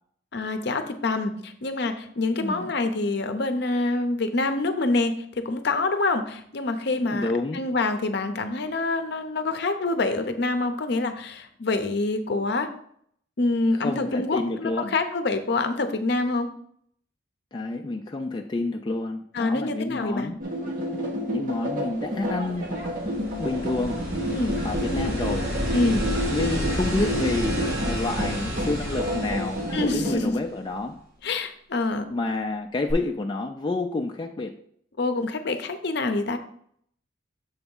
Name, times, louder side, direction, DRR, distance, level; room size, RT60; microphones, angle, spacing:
voice 1, 0.3-7.3 7.5-12.7 13.4-16.5 19.3-20.3 24.3-24.6 25.7-26.1 29.7-30.4 31.2-32.1 35.0-36.4, left 2 dB, 60° left, 8 dB, 0.6 m, -26 dB
voice 2, 2.4-2.7 7.1-7.6 13.7-14.9 17.5-20.4 21.3-22.8 23.4-24.0 24.6-25.5 26.3-31.0 32.1-34.6, left 2 dB, 25° left, 3 dB, 0.3 m, -29 dB
sound 1, 20.4-30.1, equal, 45° right, 1.2 m, -30 dB
Static Surf, 22.3-30.8 32.9-33.0, equal, 90° right, 2.6 m, -31 dB
7.1 x 3.4 x 5.4 m, 0.66 s
head